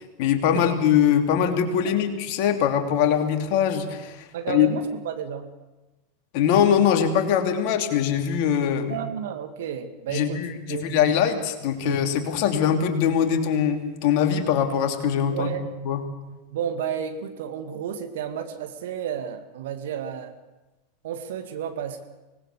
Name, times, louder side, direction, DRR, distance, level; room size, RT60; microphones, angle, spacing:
voice 1, 0.2-4.7 6.3-9.0 10.1-15.5 15.8-16.0, left 8 dB, 50° left, 5 dB, 3.0 m, -22 dB
voice 2, 4.3-5.5 8.9-11.2 11.8-12.0 15.3-15.6 16.5-20.3 21.0-22.0, right 8 dB, 60° right, 7 dB, 2.3 m, -32 dB
25.0 x 19.0 x 6.9 m, 1.1 s
figure-of-eight pair, 85°, 0 cm